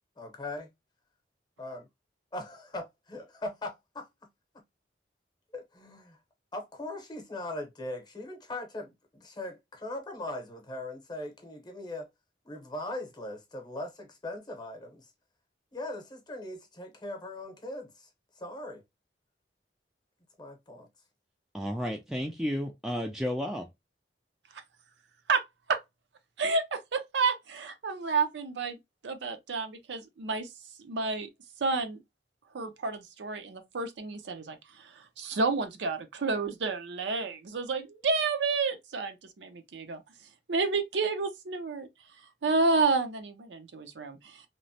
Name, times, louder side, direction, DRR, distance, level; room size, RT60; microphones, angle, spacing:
voice 1, 0.2-0.7 1.6-1.9 2.3-4.1 5.5-6.2 6.5-12.1 12.4-15.1 15.7-18.8 20.4-20.9, left 1 dB, 25° left, 0.7 m, -40 dB
voice 2, 21.5-23.7, equal, 5° right, 0.3 m, -32 dB
voice 3, 26.4-28.8 29.0-30.5 30.8-31.3 31.6-32.0 32.5-34.9 35.2-40.0 40.5-41.9 42.4-44.4, right 4 dB, 85° right, 0.5 m, -30 dB
2.9 x 2.0 x 2.6 m
head